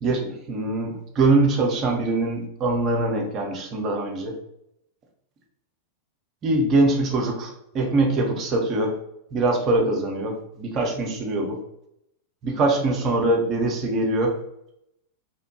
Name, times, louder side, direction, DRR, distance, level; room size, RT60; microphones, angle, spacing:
voice 1, 0.0-4.4 6.4-8.9 9.3-11.6 12.4-14.3, right 2 dB, 30° right, 1 dB, 0.6 m, -23 dB
2.9 x 2.1 x 2.8 m, 0.79 s
figure-of-eight pair, 90°, 0 cm